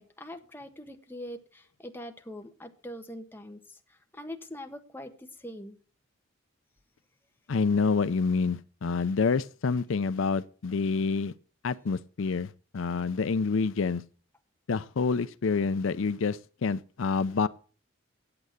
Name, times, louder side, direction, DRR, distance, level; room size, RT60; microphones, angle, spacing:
voice 1, 0.0-3.6 4.1-5.8, equal, 10° left, 1.2 m, -43 dB
voice 2, 7.5-11.3 11.6-14.0 14.7-17.5, left 4 dB, 75° left, 0.5 m, -27 dB
8.8 x 8.4 x 7.8 m
head